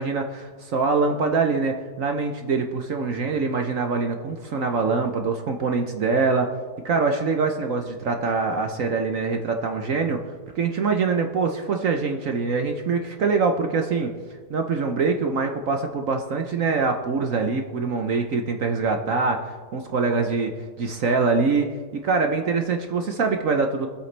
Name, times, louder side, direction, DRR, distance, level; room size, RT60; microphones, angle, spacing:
voice 1, 0.0-6.5 6.8-10.2 10.5-14.1 14.5-21.7 22.0-23.9, right 4 dB, 55° right, 4 dB, 1.0 m, -24 dB
23.5 x 8.1 x 3.3 m, 1.5 s
omnidirectional pair, 2.0 m